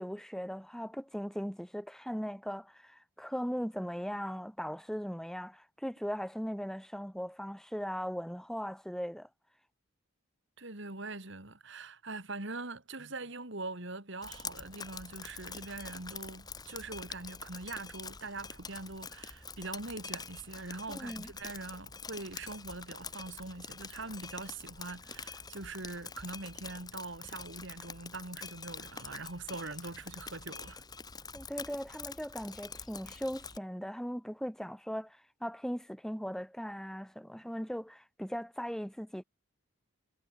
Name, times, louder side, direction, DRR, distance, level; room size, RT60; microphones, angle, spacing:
voice 1, 0.0-9.3 20.9-21.3 31.3-39.2, equal, ahead, 2.8 m, -39 dB
voice 2, 10.6-30.8, right 3 dB, 55° right, 3.0 m, -43 dB
Drip, 14.2-33.6, left 5 dB, 20° left, 2.8 m, -46 dB
head